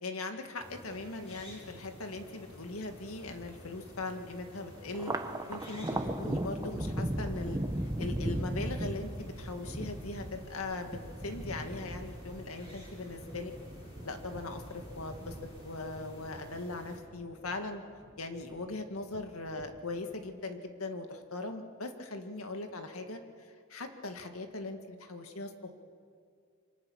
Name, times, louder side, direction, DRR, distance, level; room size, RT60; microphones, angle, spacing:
voice 1, 0.0-5.1 5.5-13.5 14.0-15.4 15.6-17.8 18.2-25.7, left 2 dB, 85° left, 6 dB, 2.0 m, -40 dB
sound 1, 0.6-17.0, left 1 dB, 30° left, 7.5 m, -51 dB
Thunder, 4.9-17.6 18.0-18.8 19.1-20.0, right 1 dB, 15° right, 1.0 m, -38 dB
27.5 x 24.5 x 6.4 m, 2.3 s
head